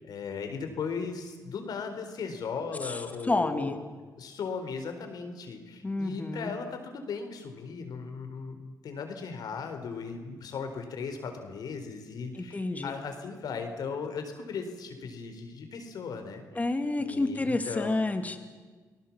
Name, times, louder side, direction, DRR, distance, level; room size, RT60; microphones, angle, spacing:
voice 1, 0.0-3.7 4.2-16.4 17.0-18.0, left 5 dB, 75° left, 6 dB, 4.1 m, -37 dB
voice 2, 3.3-3.8 5.8-6.5 12.3-13.0 16.5-18.4, left 2 dB, 20° left, 7 dB, 2.5 m, -29 dB
29.5 x 19.0 x 7.4 m, 1.4 s
cardioid pair, 90°, 7 cm